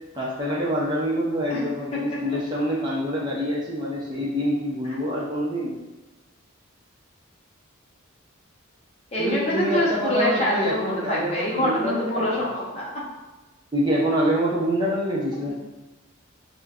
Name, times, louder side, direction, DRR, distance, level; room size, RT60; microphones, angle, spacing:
voice 1, 0.2-5.7 9.2-12.5 13.7-15.5, equal, 20° right, -5 dB, 0.6 m, -26 dB
voice 2, 9.1-13.0 15.5-15.6, left 1 dB, 30° left, -5 dB, 0.8 m, -25 dB
4.9 x 2.1 x 2.4 m, 1.1 s
head